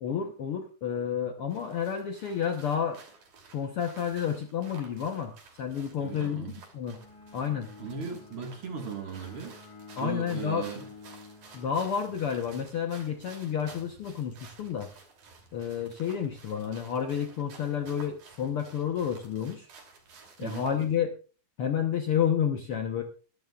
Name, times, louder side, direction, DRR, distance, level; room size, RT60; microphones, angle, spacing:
voice 1, 0.0-3.0 3.5-7.0 7.3-7.7 10.0-10.7 11.5-14.9 15.5-19.7 20.4-21.1 21.6-23.0, left 8 dB, 60° left, 4 dB, 1.5 m, -30 dB
sound 1, 1.5-21.0, right 4 dB, 70° right, 4.4 m, -53 dB
voice 2, 6.0-6.5 7.8-9.6 10.0-10.9 20.4-20.7, right 5 dB, 45° right, 3 dB, 2.4 m, -37 dB
Bowed string instrument, 6.8-12.6, left 4 dB, 80° left, 6.9 m, -50 dB
21.5 x 12.5 x 2.4 m, 0.36 s
omnidirectional pair, 3.7 m